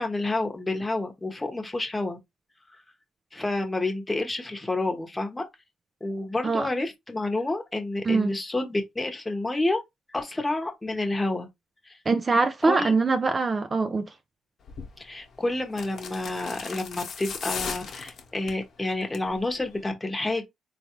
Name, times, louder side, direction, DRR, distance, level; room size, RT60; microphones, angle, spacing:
voice 1, 0.0-2.2 3.3-5.4 6.0-9.8 10.1-11.5 11.9-12.0 12.6-12.9 15.0-20.5, left 2 dB, 15° left, 1.0 m, -29 dB
voice 2, 12.1-14.1, right 3 dB, 30° right, 0.4 m, -23 dB
sound 1, 14.7-14.9 15.7-18.6 19.0-19.3 19.6-19.7, left 6 dB, 55° left, 1.0 m, -36 dB
3.7 x 2.4 x 3.0 m
cardioid pair, 90°, 0 cm